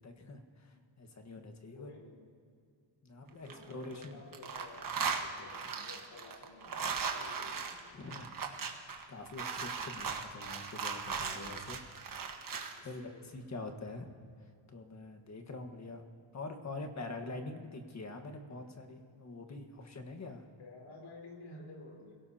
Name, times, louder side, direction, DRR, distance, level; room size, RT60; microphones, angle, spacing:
voice 1, 0.0-1.9 3.0-4.2 5.4-5.5 7.9-11.8 12.8-14.1 14.7-16.0 16.3-20.4, left 2 dB, 35° left, 5 dB, 1.5 m, -45 dB
voice 2, 1.7-2.3 3.3-4.9 5.1-8.0 12.7-13.3 20.6-22.1, left 3 dB, 85° left, -1 dB, 4.3 m, -52 dB
sound 1, 3.3-4.1 4.3-12.8, right 5 dB, 45° right, 1.5 m, -38 dB
27.0 x 17.5 x 2.9 m, 2.3 s
wide cardioid pair, 145°, 47 cm